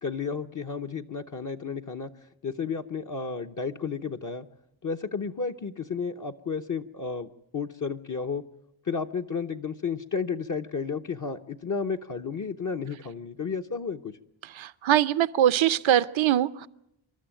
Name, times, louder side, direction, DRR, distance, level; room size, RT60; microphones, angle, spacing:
voice 1, 0.0-2.1 2.4-4.5 4.8-8.4 8.9-14.2, left 5 dB, 40° left, 3 dB, 0.9 m, -32 dB
voice 2, 14.5-16.7, right 11 dB, 70° right, 16 dB, 0.8 m, -22 dB
28.0 x 12.5 x 9.0 m, 0.80 s
wide cardioid pair, 100°, 48 cm